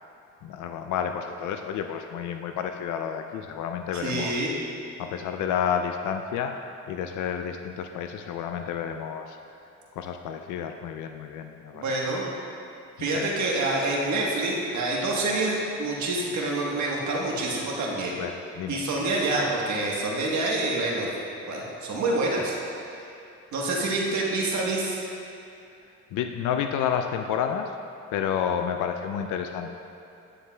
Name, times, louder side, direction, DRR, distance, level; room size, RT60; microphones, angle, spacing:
voice 1, 0.4-4.4 5.0-6.6 6.9-9.4 10.0-12.1 13.0-13.3 18.2-18.8 26.1-27.7 28.1-29.7, left 8 dB, 80° left, 6 dB, 0.5 m, -30 dB
voice 2, 3.9-4.5 11.7-12.2 13.0-18.2 18.7-21.1 21.5-22.5 22.8-23.0 23.5-25.0, right 2 dB, 70° right, -3 dB, 1.3 m, -27 dB
9.8 x 9.1 x 2.2 m, 2.7 s
cardioid pair, 90°, 30 cm